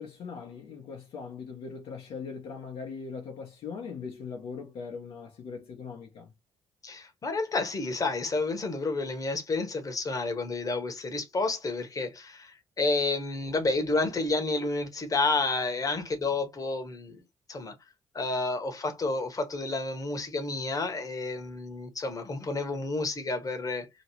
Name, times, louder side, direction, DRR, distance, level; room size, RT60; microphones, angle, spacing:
voice 1, 0.0-6.3, left 5 dB, 60° left, 1.0 m, -40 dB
voice 2, 6.8-17.2 17.5-17.7 18.1-23.9, left 3 dB, 35° left, 1.2 m, -30 dB
3.0 x 2.8 x 2.9 m
hypercardioid pair, 45°, 11 cm